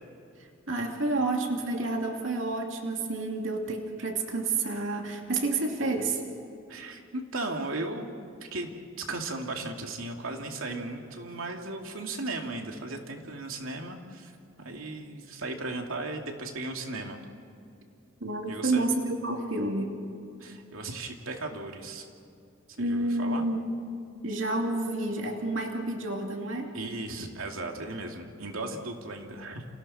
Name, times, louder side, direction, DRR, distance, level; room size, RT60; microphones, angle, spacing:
voice 1, 0.7-6.2 18.2-19.9 22.8-23.6 24.2-26.7, right 2 dB, 70° right, 2 dB, 2.7 m, -29 dB
voice 2, 6.7-8.1 8.4-14.3 14.6-17.2 18.5-18.9 20.4-22.1 22.8-23.5 26.7-29.7, right 2 dB, 90° right, 2 dB, 2.6 m, -36 dB
30.0 x 28.0 x 4.3 m, 2.6 s
head